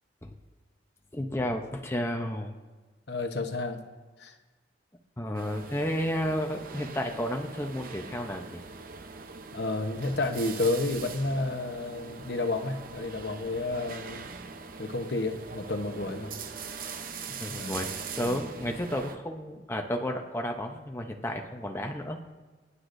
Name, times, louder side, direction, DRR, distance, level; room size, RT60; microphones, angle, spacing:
voice 1, 1.1-2.5 5.2-8.6 17.4-22.2, equal, 15° left, 3 dB, 0.7 m, -32 dB
voice 2, 3.1-3.8 4.2-4.3 9.5-14.3 14.8-16.3 17.5-17.8 18.2-18.4, left 2 dB, 60° left, 6 dB, 0.9 m, -31 dB
sound 1, 5.3-19.2, right 5 dB, 50° right, 0.7 m, -42 dB
24.5 x 9.8 x 2.6 m, 1.3 s
head